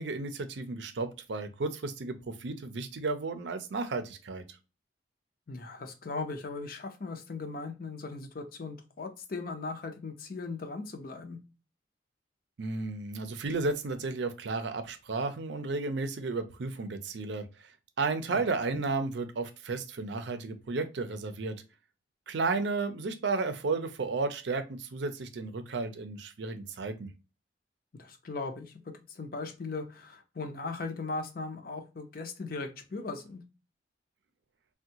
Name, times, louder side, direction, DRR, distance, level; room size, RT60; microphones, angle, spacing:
voice 1, 0.0-4.6 12.6-17.5 18.0-21.6 22.3-27.1, right 3 dB, 75° right, 8 dB, 0.5 m, -33 dB
voice 2, 5.5-11.4 18.3-18.4 18.7-18.8 27.9-33.4, left 3 dB, 50° left, 6 dB, 0.5 m, -38 dB
3.5 x 2.2 x 2.7 m, 0.30 s
head